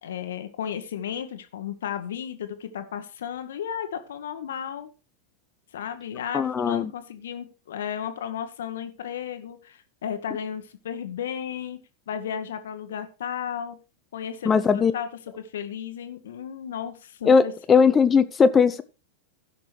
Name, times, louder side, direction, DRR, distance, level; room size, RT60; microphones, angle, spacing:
voice 1, 0.0-4.9 5.7-11.8 12.1-13.8 14.1-17.8, left 8 dB, 60° left, 8 dB, 1.0 m, -34 dB
voice 2, 6.3-6.8 14.5-14.9 17.3-18.8, left 5 dB, 20° left, 12 dB, 0.5 m, -19 dB
16.0 x 6.0 x 3.2 m, 0.32 s
figure-of-eight pair, 90°, 0 cm